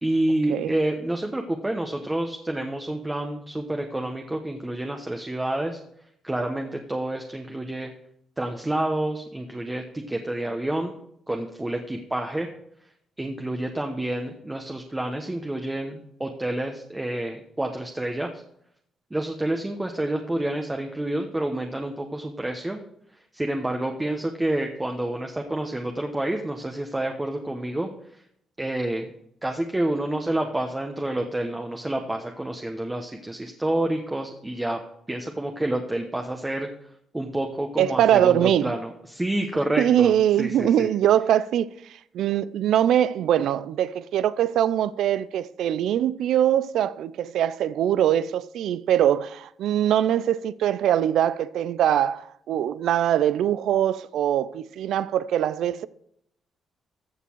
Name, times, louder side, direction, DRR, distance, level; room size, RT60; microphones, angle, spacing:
voice 1, 0.0-5.8 6.2-7.9 8.4-10.9 11.3-12.5 13.2-18.4 19.1-22.8 23.1-28.2 28.6-29.1 29.4-34.8 35.1-36.7 37.1-40.1 40.4-40.9, right 1 dB, 15° right, 1.1 m, -28 dB
voice 2, 37.8-38.7 39.8-41.7 42.1-55.9, right 10 dB, 75° right, 0.5 m, -22 dB
14.5 x 6.8 x 4.6 m
cardioid pair, 90°, 0 cm